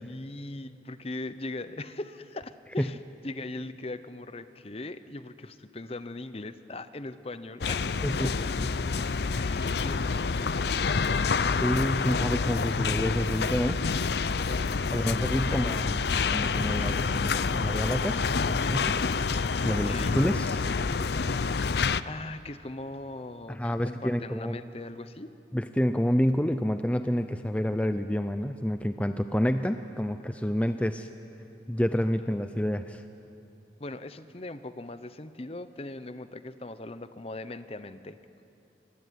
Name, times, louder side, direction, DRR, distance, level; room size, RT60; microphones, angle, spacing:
voice 1, 0.0-3.0 3.2-7.9 8.2-8.3 9.4-11.0 15.0-15.8 16.8-17.0 19.8-20.2 21.8-25.3 33.8-38.2, left 2 dB, 35° left, 12 dB, 0.8 m, -40 dB
sound 1, 7.6-22.0, left 4 dB, 65° left, 0.6 m, -28 dB
voice 2, 8.0-8.4 11.6-13.8 14.9-18.2 18.5-19.0 19.6-20.7 23.5-24.6 25.5-31.1 31.7-33.0, equal, 5° left, 8 dB, 0.5 m, -28 dB
24.5 x 20.5 x 9.4 m, 2.9 s
head